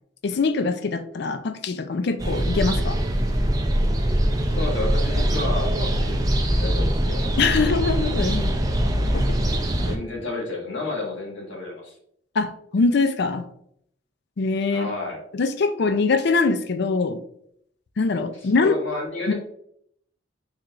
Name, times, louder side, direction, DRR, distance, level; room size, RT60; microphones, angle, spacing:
voice 1, 0.2-3.0 7.4-8.5 9.1-9.6 12.3-13.5 14.4-14.9 15.3-17.2 18.0-18.8 19.3-19.4, left 4 dB, 60° left, 9 dB, 0.4 m, -23 dB
sound 1, 2.2-10.0, right 1 dB, 20° right, 0.5 m, -22 dB
voice 2, 4.5-6.2 6.6-7.3 9.5-12.0 14.7-15.2 18.6-19.3, left 2 dB, 75° left, -2 dB, 1.6 m, -31 dB
4.6 x 4.4 x 2.5 m, 0.68 s
head